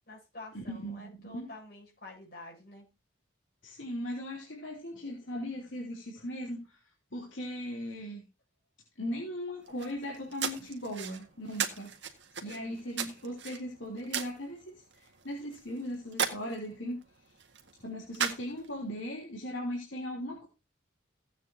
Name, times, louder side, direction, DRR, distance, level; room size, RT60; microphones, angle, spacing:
voice 1, 0.0-2.8 12.4-12.8, left 2 dB, 50° left, -1 dB, 7.9 m, -49 dB
voice 2, 0.5-1.5 3.6-6.8 7.1-8.2 9.0-11.9 12.4-17.0 17.8-20.5, equal, 70° left, -2 dB, 3.2 m, -38 dB
sound 1, 9.6-18.9, right 7 dB, 65° right, 1.9 m, -38 dB
16.0 x 9.0 x 2.8 m, 0.27 s
head